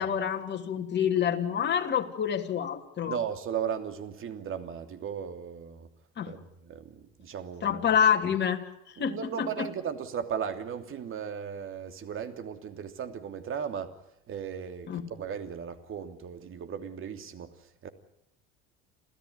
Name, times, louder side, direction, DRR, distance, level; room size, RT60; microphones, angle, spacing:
voice 1, 0.0-3.2 6.2-6.3 7.6-8.6 9.0-9.7 14.9-15.0, left 8 dB, 35° left, 3.1 m, -27 dB
voice 2, 3.1-5.9 6.2-7.8 9.0-14.0 14.3-17.9, right 8 dB, 40° right, 3.0 m, -36 dB
28.5 x 15.5 x 9.7 m
hypercardioid pair, 90°, 31 cm